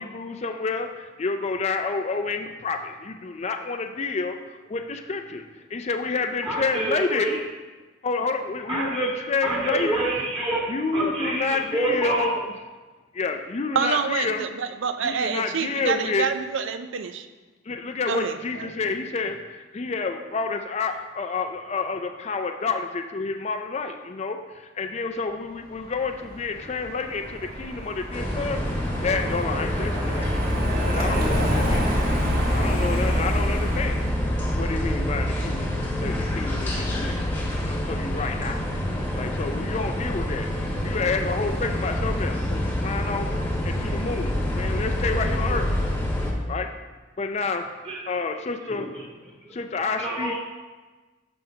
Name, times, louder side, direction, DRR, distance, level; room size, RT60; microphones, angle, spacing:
voice 1, 0.0-7.4 8.0-10.0 10.7-12.5 13.1-14.5 15.0-16.3 17.7-30.3 30.9-31.9 32.5-34.0 34.6-35.7 36.0-38.6 39.2-40.5 40.8-45.9 46.5-46.8 47.2-47.7 48.1-48.9 49.5-50.4, left 4 dB, 35° left, 5 dB, 0.4 m, -29 dB
voice 2, 6.4-7.3 8.7-9.1 9.4-10.7 10.9-12.3 47.8-48.0 48.8-48.9 49.4-50.4, right 2 dB, 25° right, -6 dB, 2.1 m, -27 dB
voice 3, 13.7-17.3 18.1-18.7, right 6 dB, 70° right, 10 dB, 0.5 m, -27 dB
Car passing by, 25.7-34.2, equal, 45° right, 1.4 m, -30 dB
sound 1, 28.1-46.3, left 1 dB, 10° left, 1.2 m, -26 dB
13.5 x 5.4 x 2.8 m, 1.3 s
head